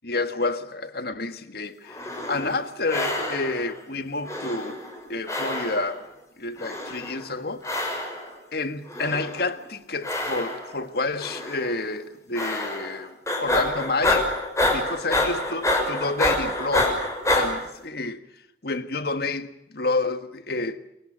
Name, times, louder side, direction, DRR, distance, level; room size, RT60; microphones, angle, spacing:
voice 1, 0.0-4.8 5.1-6.1 6.4-7.6 8.5-14.3 14.7-17.1 17.3-18.2 18.6-20.8, left 3 dB, 55° left, 1.7 m, -29 dB
sound 1, 1.9-2.6 2.9-3.7 4.3-5.0 5.3-6.0 6.6-7.2 7.6-8.3 8.9-9.5 10.0-10.8 11.2-11.7 12.4-13.0 13.3-17.5, left 1 dB, 15° left, 6.2 m, -27 dB
28.5 x 22.5 x 6.4 m
head